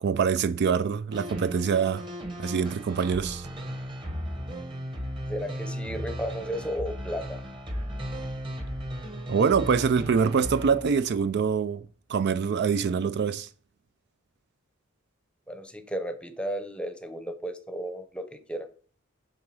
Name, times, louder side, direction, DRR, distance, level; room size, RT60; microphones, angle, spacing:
voice 1, 0.0-2.0 2.4-3.5 9.3-13.5, right 6 dB, 55° right, 0.4 m, -25 dB
sound 1, 1.1-11.3, equal, 25° right, 1.3 m, -36 dB
voice 2, 5.3-7.4 15.5-18.7, equal, 5° left, 0.8 m, -34 dB
9.8 x 3.8 x 4.8 m
head